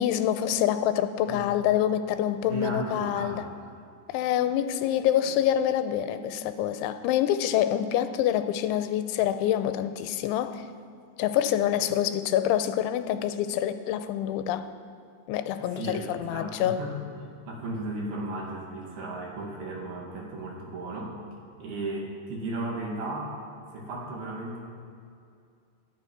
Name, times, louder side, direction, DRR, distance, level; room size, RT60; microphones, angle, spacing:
voice 1, 0.0-3.5 4.1-10.7 11.2-14.7 15.3-16.8, left 11 dB, 85° left, 10 dB, 3.0 m, -26 dB
voice 2, 2.5-3.5 5.2-5.3 15.6-21.2 21.6-23.4 23.7-24.6, right 2 dB, 60° right, -2 dB, 3.7 m, -35 dB
27.5 x 10.0 x 4.7 m, 2.3 s
omnidirectional pair, 5.4 m